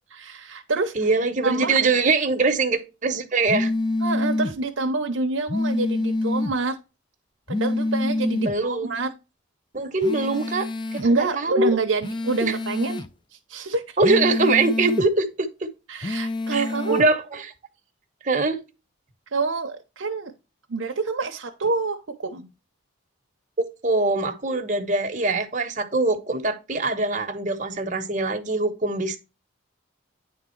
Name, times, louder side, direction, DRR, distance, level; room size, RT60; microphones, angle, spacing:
voice 1, 0.1-0.9 1.4-1.8 4.0-6.8 7.5-9.1 11.0-13.0 13.5-14.0 15.9-17.0 19.3-20.3 20.7-22.5, right 3 dB, 75° right, 0.8 m, -26 dB
voice 2, 0.9-3.7 8.4-9.0 9.7-11.8 12.4-12.6 14.0-15.7 16.5-17.4 18.2-18.6 23.8-29.2, right 3 dB, 40° right, 1.1 m, -23 dB
sound 1, 3.5-4.5 5.5-6.5 7.5-8.5 10.0-11.1 12.0-13.1 14.0-15.1 16.0-17.1, left 2 dB, 20° left, 0.4 m, -26 dB
9.4 x 3.7 x 4.4 m
head